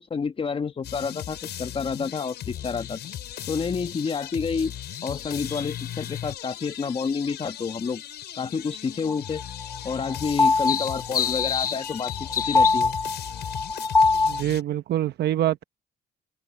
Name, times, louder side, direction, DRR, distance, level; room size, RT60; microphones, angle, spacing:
voice 1, 0.0-3.0 3.5-4.7 5.0-8.0 8.4-9.4 9.8-12.9, left 5 dB, 30° left, 1.3 m, -29 dB
sound 1, 0.8-14.6, left 11 dB, 75° left, 6.9 m, -38 dB
sound 2, 2.5-12.8, left 9 dB, 50° left, 1.1 m, -35 dB
sound 3, 9.1-14.4, left 3 dB, 10° left, 0.3 m, -23 dB
voice 2, 14.2-15.6, right 12 dB, 70° right, 1.0 m, -25 dB
open air
cardioid pair, 120°, 18 cm